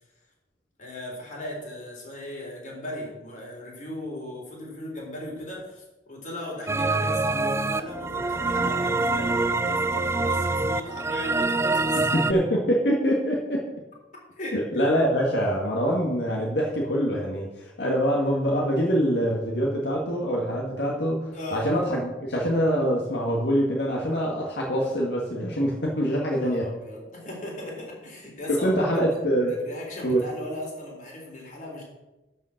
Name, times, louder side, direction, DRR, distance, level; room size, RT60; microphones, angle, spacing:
voice 1, 0.8-12.1 14.4-14.6 21.3-21.7 26.3-29.0 29.5-31.8, left 1 dB, 45° left, -3 dB, 4.0 m, -37 dB
sound 1, 6.7-12.3, right 3 dB, 15° right, 0.4 m, -25 dB
voice 2, 12.1-13.6 14.5-26.7 28.5-29.6 30.0-30.2, equal, 75° left, -3 dB, 1.8 m, -24 dB
12.5 x 5.5 x 6.5 m, 1.0 s
head